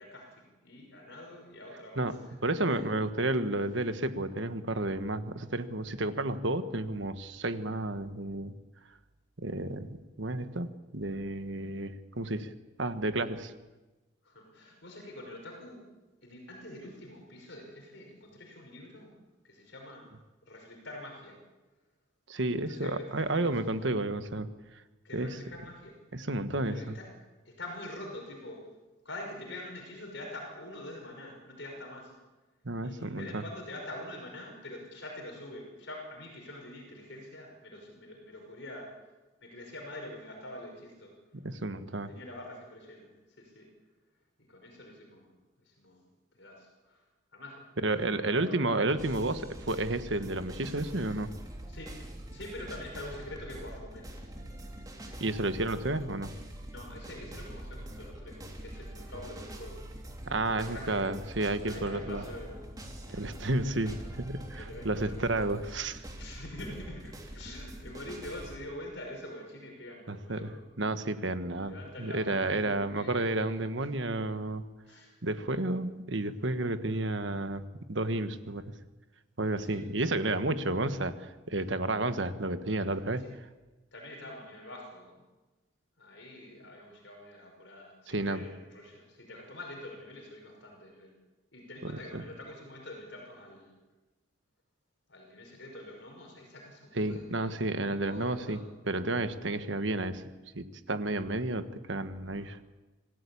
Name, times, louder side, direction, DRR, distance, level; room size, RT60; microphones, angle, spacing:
voice 1, 0.0-2.4 2.6-2.9 7.7-7.8 14.2-15.8 16.2-19.1 19.4-20.1 20.5-21.4 22.7-23.6 25.0-26.0 26.7-27.1 27.4-28.7 29.0-32.1 32.8-39.1 39.4-41.2 42.1-43.7 44.4-47.0 47.3-48.9 50.9-51.3 51.7-52.0 52.3-54.3 55.0-56.3 56.6-59.8 60.6-61.1 61.6-63.3 63.6-64.0 64.6-70.6 71.6-73.9 74.8-75.2 79.6-79.8 83.2-83.3 83.9-85.2 86.0-91.1 91.5-93.7 95.1-98.7 102.4-102.5, left 1 dB, 60° left, 2 dB, 5.8 m, -46 dB
voice 2, 2.0-8.5 9.4-12.5 12.8-13.5 22.3-24.5 25.1-25.4 26.1-27.0 32.6-33.4 41.4-42.1 47.8-51.3 55.2-56.3 60.3-62.2 63.1-66.0 70.1-70.5 70.8-74.6 75.2-77.6 77.9-78.7 79.4-83.2 88.1-88.4 91.8-92.2 96.9-98.6 98.9-100.2 100.5-102.6, right 2 dB, 65° right, 10 dB, 1.4 m, -31 dB
sound 1, 49.0-68.6, right 1 dB, 20° right, 3.2 m, -44 dB
26.0 x 16.5 x 8.6 m, 1.2 s
head